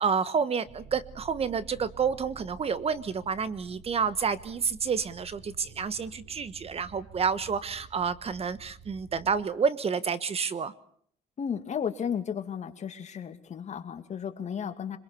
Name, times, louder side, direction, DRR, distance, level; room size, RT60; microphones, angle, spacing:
voice 1, 0.0-10.7, right 6 dB, 35° right, 15 dB, 1.3 m, -29 dB
sound 1, 0.6-9.4, right 6 dB, 60° right, 3.3 m, -50 dB
voice 2, 11.4-15.0, left 7 dB, 45° left, 7 dB, 2.5 m, -34 dB
25.5 x 21.5 x 7.1 m, 0.63 s
cardioid pair, 110°, 17 cm